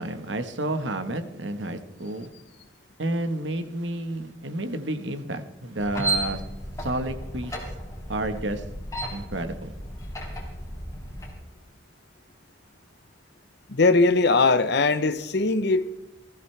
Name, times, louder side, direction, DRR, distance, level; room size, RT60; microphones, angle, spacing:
voice 1, 0.0-2.3 3.0-6.4 6.8-7.5 8.1-8.6 9.1-9.7, right 1 dB, 90° right, 1.4 m, -30 dB
sound 1, 5.8-11.3, right 1 dB, 20° left, 3.9 m, -33 dB
voice 2, 13.7-15.9, left 3 dB, 65° left, 0.9 m, -20 dB
20.5 x 15.0 x 3.4 m
head